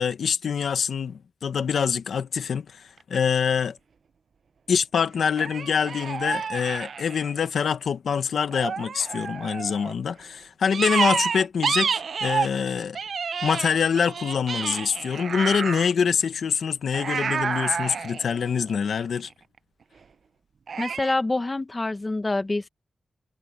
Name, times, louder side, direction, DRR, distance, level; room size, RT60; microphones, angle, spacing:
voice 1, 0.0-3.8 4.7-13.0 13.4-19.3, left 6 dB, 85° left, 1.3 m, -25 dB
sound 1, 3.0-3.2 5.4-7.6 8.5-9.9 10.7-12.6 13.0-15.9 16.9-19.2 20.7-21.1, right 6 dB, 70° right, 0.6 m, -29 dB
voice 2, 20.8-22.7, left 2 dB, 25° left, 1.2 m, -26 dB
wide cardioid pair, 95°, 0 cm